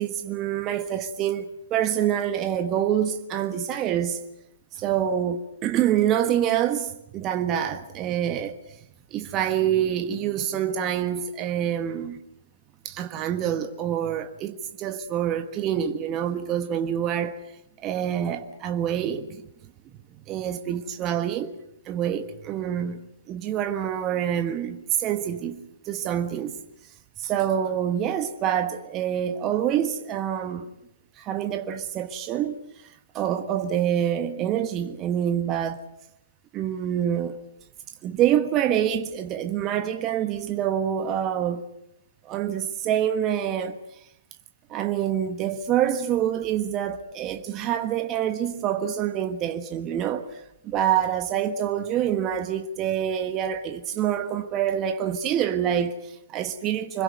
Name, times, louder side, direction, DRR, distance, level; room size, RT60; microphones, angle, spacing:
voice 1, 0.0-4.2 4.7-8.8 9.1-12.2 12.8-17.4 17.8-19.4 20.3-21.5 21.8-26.6 27.2-30.7 31.2-35.9 36.5-37.4 38.0-41.7 42.2-44.1 44.7-57.0, right 10 dB, 30° right, 1.4 m, -26 dB
25.5 x 21.5 x 7.9 m
figure-of-eight pair, 120°, 0 cm